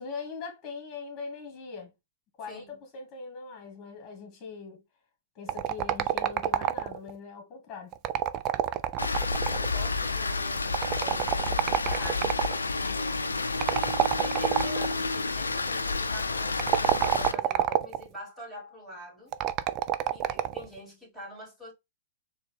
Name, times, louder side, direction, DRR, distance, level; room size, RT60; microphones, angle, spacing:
voice 1, 0.0-1.9 2.4-4.8 5.3-8.0, left 5 dB, 30° left, 1.7 m, -41 dB
voice 2, 2.5-2.8 9.5-13.3 14.2-19.3 20.1-21.7, equal, ahead, 2.5 m, -45 dB
sound 1, 5.5-7.1 7.9-9.8 10.7-12.6 13.6-14.9 16.5-18.1 19.3-20.7, right 12 dB, 35° right, 0.4 m, -27 dB
Rain, 9.0-17.3, left 3 dB, 90° left, 0.4 m, -30 dB
4.1 x 2.4 x 3.2 m
hypercardioid pair, 110°, 0 cm